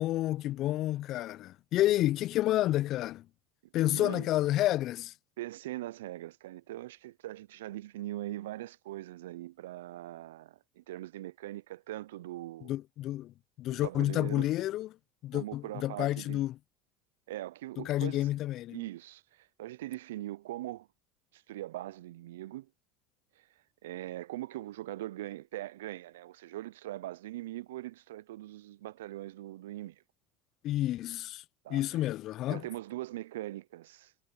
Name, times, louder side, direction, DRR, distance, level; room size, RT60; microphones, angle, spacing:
voice 1, 0.0-3.3 3.7-5.1 12.6-14.9 15.2-16.6 17.8-18.8 30.6-31.4 31.7-32.6, left 14 dB, 55° left, 0.4 m, -30 dB
voice 2, 3.8-4.3 5.4-12.7 13.8-14.5 15.3-16.4 17.3-18.3 18.7-20.9 21.3-22.7 23.4-23.5 23.8-30.0 31.6-32.0 32.5-34.1, right 15 dB, 85° right, 0.3 m, -41 dB
hypercardioid pair, 90°, 0 cm